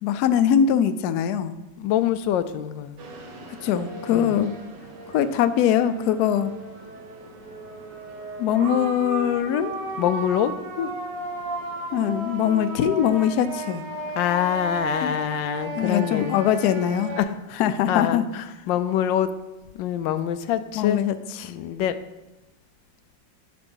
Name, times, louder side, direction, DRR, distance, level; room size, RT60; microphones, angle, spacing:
voice 1, 0.0-1.5 3.6-4.5 5.1-6.5 8.4-9.7 10.8-10.9 11.9-13.8 15.0-15.2 15.8-17.1 17.6-18.2 20.7-21.5, left 9 dB, 70° left, 11 dB, 1.0 m, -22 dB
voice 2, 1.8-3.0 4.1-4.4 10.0-10.5 14.1-16.4 17.2-17.6 17.9-19.3 19.7-21.0 21.5-22.0, left 10 dB, 85° left, 11 dB, 1.3 m, -25 dB
sound 1, 3.0-17.2, right 1 dB, 70° right, 1.9 m, -34 dB
10.5 x 5.2 x 5.4 m, 1.0 s
omnidirectional pair, 2.0 m